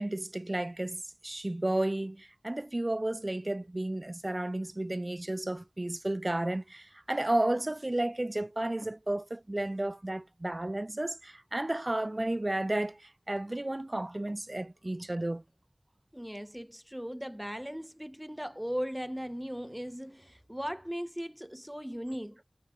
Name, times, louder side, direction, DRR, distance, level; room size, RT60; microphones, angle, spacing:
voice 1, 0.0-15.4, right 1 dB, 40° right, 3.4 m, -32 dB
voice 2, 16.1-22.4, equal, 5° right, 0.9 m, -38 dB
wide cardioid pair, 45°, 0 cm